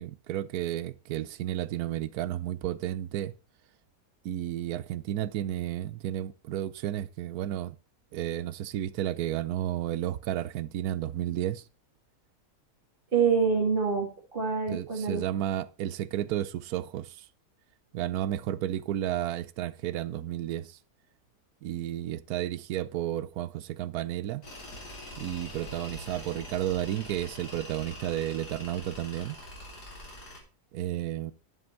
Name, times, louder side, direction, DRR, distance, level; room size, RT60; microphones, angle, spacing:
voice 1, 0.0-3.3 4.2-7.8 8.1-11.6 14.7-17.3 17.9-20.8 21.6-24.4 25.2-29.4 30.7-31.3, right 12 dB, 70° right, 1.1 m, -32 dB
voice 2, 13.1-15.2, right 5 dB, 35° right, 2.6 m, -26 dB
Tools, 24.4-30.4, left 1 dB, 85° left, 4.2 m, -44 dB
10.5 x 7.7 x 4.4 m
omnidirectional pair, 1.7 m